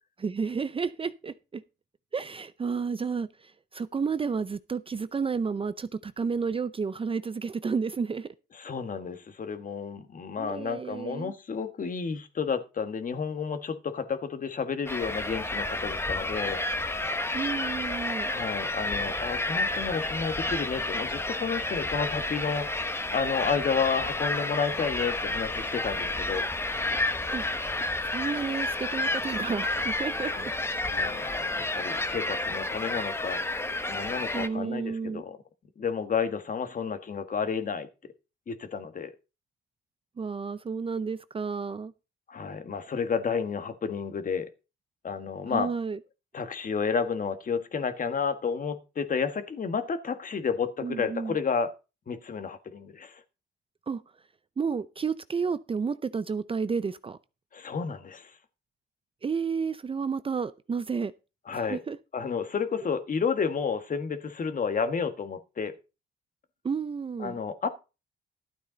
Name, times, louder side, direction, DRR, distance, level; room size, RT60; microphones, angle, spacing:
voice 1, 0.2-1.6 2.1-8.3 10.4-11.3 17.3-18.3 27.3-27.5 28.0-30.5 34.3-35.2 40.2-41.9 45.5-46.0 50.8-51.4 53.9-54.0 54.6-57.2 59.2-61.1 61.5-62.0 66.6-67.3, right 5 dB, 25° right, 0.5 m, -31 dB
voice 2, 8.6-16.6 18.3-26.5 30.3-30.5 30.9-33.4 33.9-35.4 35.8-37.9 38.5-39.1 42.3-44.5 45.0-45.7 46.3-51.7 52.1-53.2 57.5-58.3 61.5-61.8 62.1-65.7 67.2-67.7, left 6 dB, 45° left, 1.5 m, -31 dB
sound 1, 14.9-34.5, left 2 dB, 10° left, 1.0 m, -30 dB
12.5 x 8.4 x 4.0 m
cardioid pair, 90°, 20 cm